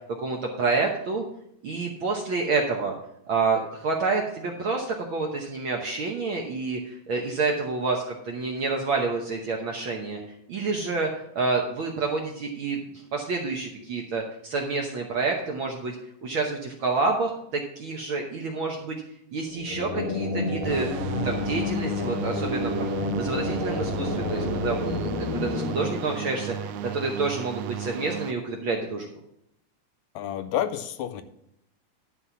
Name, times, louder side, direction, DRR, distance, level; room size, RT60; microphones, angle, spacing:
voice 1, 0.2-1.2 1.6-2.9 3.3-10.2 10.5-19.0 19.3-20.9 21.2-29.1, right 3 dB, 60° right, 1 dB, 1.3 m, -28 dB
sound 1, 19.5-27.1, left 3 dB, 40° left, 1.4 m, -30 dB
sound 2, 20.6-28.3, right 11 dB, 85° right, 2.0 m, -35 dB
voice 2, 30.2-31.2, left 11 dB, 80° left, 12 dB, 1.8 m, -29 dB
11.0 x 4.2 x 7.2 m, 0.75 s
omnidirectional pair, 3.4 m